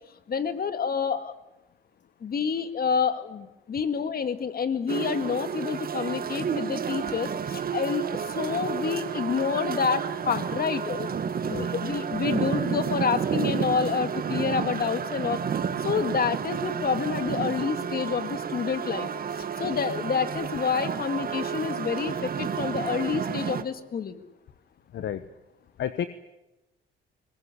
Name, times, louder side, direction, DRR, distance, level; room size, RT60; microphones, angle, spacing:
voice 1, 0.3-1.3 2.2-11.1 11.5-15.4 15.8-19.1 19.6-24.2, left 6 dB, 50° left, 10 dB, 2.1 m, -28 dB
sound 1, 4.9-23.6, right 7 dB, 50° right, 1.6 m, -31 dB
voice 2, 11.4-11.7 24.9-25.2 25.8-26.1, left 9 dB, 65° left, 12 dB, 1.1 m, -31 dB
22.5 x 20.5 x 9.9 m, 0.97 s
cardioid pair, 90°, 20 cm